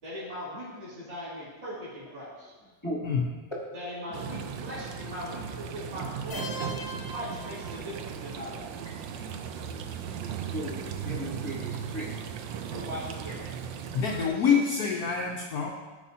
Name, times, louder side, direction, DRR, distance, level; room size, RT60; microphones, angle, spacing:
voice 1, 0.0-2.5 3.7-6.4 7.1-8.7 12.7-13.4, equal, 55° right, -12 dB, 3.0 m, -39 dB
sound 1, 4.1-14.3, right 7 dB, 75° right, 1.1 m, -37 dB
sound 2, 6.3-8.3, equal, 65° left, 1.0 m, -40 dB
voice 2, 9.1-12.1 12.5-13.0 14.2-14.6, equal, 20° left, -3 dB, 0.7 m, -39 dB
voice 3, 13.9-15.7, left 6 dB, 85° left, 0 dB, 0.8 m, -26 dB
13.0 x 4.9 x 2.8 m, 1.3 s
omnidirectional pair, 2.4 m